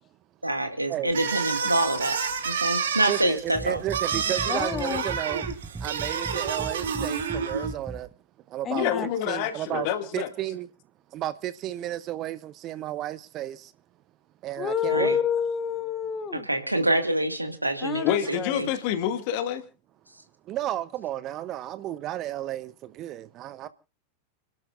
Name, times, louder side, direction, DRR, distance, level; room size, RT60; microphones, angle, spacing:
voice 1, 0.4-2.2 2.4-3.8 14.9-15.2 16.3-18.7, right 1 dB, 85° right, 2.0 m, -26 dB
sound 1, 1.1-7.7, right 6 dB, 65° right, 2.5 m, -29 dB
voice 2, 3.1-5.5 5.8-8.1 8.5-9.9 10.1-10.7 11.1-13.7 14.4-15.2 20.5-23.7, right 13 dB, 35° right, 0.6 m, -33 dB
sound 2, 3.5-8.1, right 3 dB, 10° right, 0.9 m, -39 dB
voice 3, 4.5-5.0 8.6-9.1 14.6-16.5 17.8-18.7, left 8 dB, 25° left, 1.9 m, -28 dB
voice 4, 8.7-10.3 18.0-19.6, left 9 dB, 45° left, 2.1 m, -27 dB
30.0 x 12.0 x 2.5 m
figure-of-eight pair, 90°, 0 cm